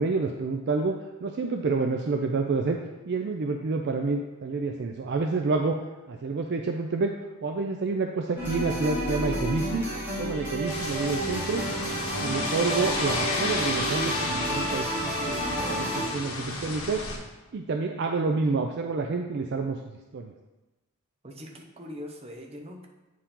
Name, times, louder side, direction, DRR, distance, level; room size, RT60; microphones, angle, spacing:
voice 1, 0.0-2.8 3.1-5.8 6.1-7.1 7.4-9.8 10.2-11.6 12.2-15.5 15.9-17.0 17.5-19.8 20.1-20.3, right 4 dB, 50° right, 4 dB, 0.4 m, -28 dB
sound 1, 8.4-16.1, right 1 dB, 10° right, 2.4 m, -31 dB
sound 2, 10.7-17.2, left 2 dB, 65° left, 1.2 m, -32 dB
voice 2, 15.6-16.7 21.2-22.9, equal, 25° right, 1 dB, 0.8 m, -43 dB
8.3 x 4.6 x 3.7 m, 1.1 s
head